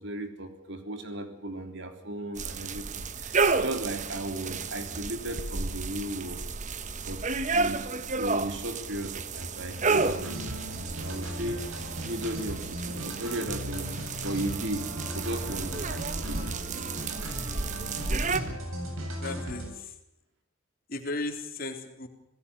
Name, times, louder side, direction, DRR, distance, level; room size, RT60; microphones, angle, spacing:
voice 1, 0.0-6.4 7.0-11.7 12.0-16.7, right 1 dB, 60° right, 7 dB, 3.3 m, -36 dB
sound 1, 2.4-18.4, right 4 dB, 35° right, 1.1 m, -32 dB
voice 2, 7.0-7.4 18.7-18.9 19.2-20.0 20.9-22.1, left 2 dB, 45° left, 4 dB, 3.7 m, -37 dB
sound 2, 9.7-19.7, equal, 75° right, 8.0 m, -37 dB
27.0 x 17.5 x 7.0 m, 0.80 s
head